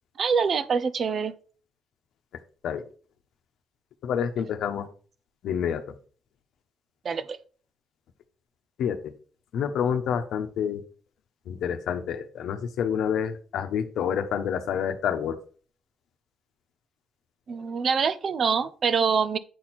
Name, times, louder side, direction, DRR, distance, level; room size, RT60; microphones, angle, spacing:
voice 1, 0.2-1.3 7.0-7.4 17.5-19.4, right 6 dB, 50° right, 14 dB, 0.6 m, -25 dB
voice 2, 4.0-4.9 5.4-5.8 8.8-9.1 9.5-10.8 11.5-15.4, left 8 dB, 75° left, 8 dB, 0.9 m, -28 dB
8.3 x 4.4 x 4.2 m, 0.41 s
cardioid pair, 90°, 0 cm